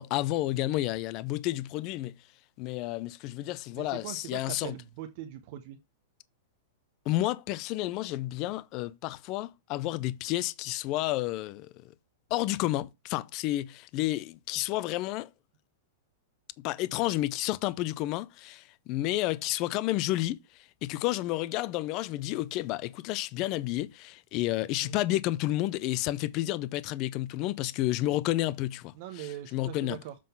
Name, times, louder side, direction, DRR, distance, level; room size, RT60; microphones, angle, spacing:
voice 1, 0.0-2.1 2.6-4.8 7.1-11.7 12.3-15.3 16.6-20.4 20.8-30.0, left 16 dB, 35° left, 0.4 m, -31 dB
voice 2, 3.7-5.8 24.8-25.0 28.9-30.1, right 11 dB, 50° right, 0.7 m, -41 dB
7.5 x 3.8 x 5.5 m
supercardioid pair, 150°, 0 cm